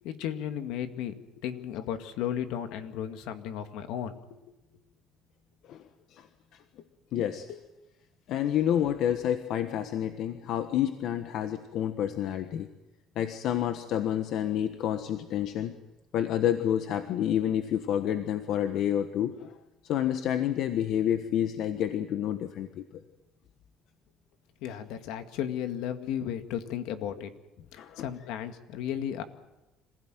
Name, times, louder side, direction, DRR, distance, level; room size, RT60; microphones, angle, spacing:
voice 1, 0.0-4.5 24.6-27.3 28.0-29.2, left 10 dB, 80° left, 8 dB, 2.0 m, -34 dB
voice 2, 7.1-7.6 8.3-12.7 13.1-15.8 16.1-19.5 19.8-22.8 27.8-28.1, left 10 dB, 65° left, 8 dB, 1.3 m, -29 dB
26.5 x 16.5 x 9.2 m, 1.0 s
cardioid pair, 135°, 0 cm